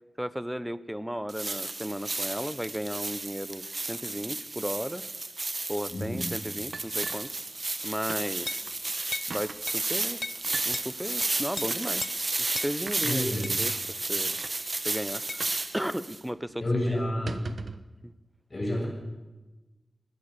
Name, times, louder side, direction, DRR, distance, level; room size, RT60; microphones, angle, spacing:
voice 1, 0.2-5.0 5.7-7.3 7.8-8.6 9.3-10.2 10.7-12.0 12.4-13.7 14.1-14.4 14.8-15.5 15.7-17.0 17.5-17.6 18.0-18.1, equal, 5° right, 15 dB, 0.8 m, -35 dB
sound 1, 1.3-16.2, right 2 dB, 35° right, 1.4 m, -32 dB
voice 2, 5.9-6.3 13.0-13.5 16.6-17.4 18.5-18.9, left 1 dB, 35° left, -1 dB, 7.3 m, -29 dB
sound 2, 6.7-7.8 8.1-8.3 8.7-8.8 9.3-9.6 10.4-10.7 11.6-11.9 12.9-13.2 14.0-14.1 14.3-14.5 15.4-15.7 15.9-16.0 16.4-16.5 17.1-17.9, right 4 dB, 65° right, 1.0 m, -40 dB
sound 3, 8.5-8.7 9.1-9.3 9.7-9.8 10.2-10.4 10.7-10.9 11.2-11.7 12.0-12.2 12.6-12.7 13.4-13.6 15.3-15.5, left 4 dB, 55° left, 0.6 m, -36 dB
22.5 x 17.5 x 6.8 m, 1.1 s
wide cardioid pair, 120°, 0 cm